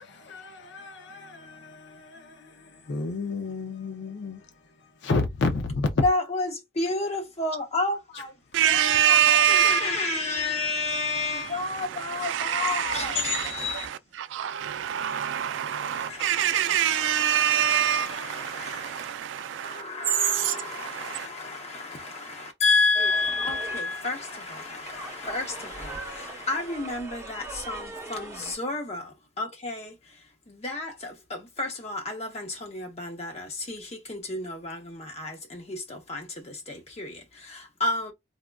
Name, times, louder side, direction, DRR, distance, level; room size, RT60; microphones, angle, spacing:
voice 1, 0.0-6.0, left 3 dB, 75° left, 0.5 m, -31 dB
voice 2, 6.0-8.3 8.7-13.9 15.5-38.1, left 3 dB, 35° left, 0.7 m, -31 dB
voice 3, 8.5-10.1 11.5-11.8 12.2-19.8 20.2-21.3, right 9 dB, 85° right, 0.3 m, -25 dB
sound 1, 22.9-28.6, right 3 dB, 15° right, 0.8 m, -41 dB
3.5 x 2.3 x 2.2 m
head